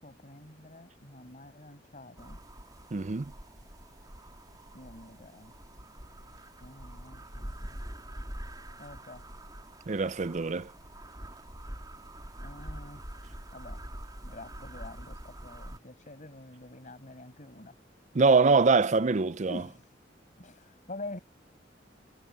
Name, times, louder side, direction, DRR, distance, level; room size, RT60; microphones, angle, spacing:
voice 1, 0.0-2.4 4.7-5.5 6.6-7.8 8.8-9.2 12.4-13.0 13.5-13.8 14.2-17.7 19.5-19.9 20.4-21.2, left 2 dB, 45° left, 6.6 m, -46 dB
sound 1, 2.2-15.8, right 1 dB, 20° right, 4.1 m, -45 dB
voice 2, 2.9-3.3 9.9-10.7 18.1-19.6, right 4 dB, 40° right, 0.6 m, -24 dB
head